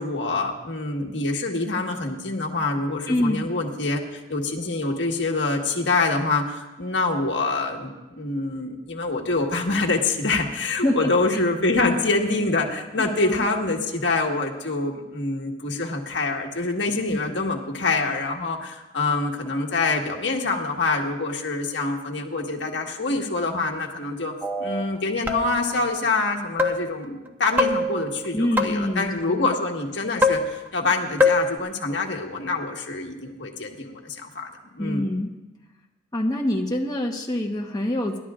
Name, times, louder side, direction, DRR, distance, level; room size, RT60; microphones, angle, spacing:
voice 1, 0.0-24.3 24.6-35.0, left 3 dB, 70° left, 1 dB, 1.6 m, -26 dB
voice 2, 3.1-3.5 10.8-11.4 13.0-13.5 17.1-17.2 28.3-29.5 34.8-35.3 36.1-38.2, left 1 dB, 20° left, -1 dB, 1.1 m, -25 dB
sound 1, 24.4-24.8 25.3-25.8 26.6-27.0 27.6-29.0 30.2-30.9 31.2-31.6, left 2 dB, 10° right, 0.9 m, -24 dB
26.5 x 12.0 x 2.5 m, 1.1 s
head